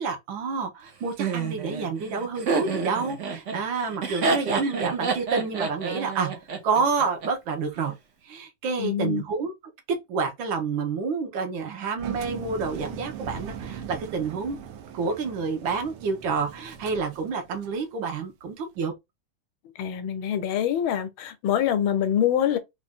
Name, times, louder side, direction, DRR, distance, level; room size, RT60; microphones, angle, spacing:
voice 1, 0.0-6.3 6.6-7.9 8.2-9.5 10.1-14.6 14.9-18.9, right 4 dB, 70° right, 1.6 m, -28 dB
Laughter, 1.2-7.3, right 4 dB, 55° right, 0.9 m, -29 dB
voice 2, 8.8-9.2 19.8-22.6, left 9 dB, 80° left, 1.4 m, -25 dB
Engine, 12.0-17.8, right 8 dB, 85° right, 1.5 m, -40 dB
3.8 x 2.5 x 3.5 m
omnidirectional pair, 2.3 m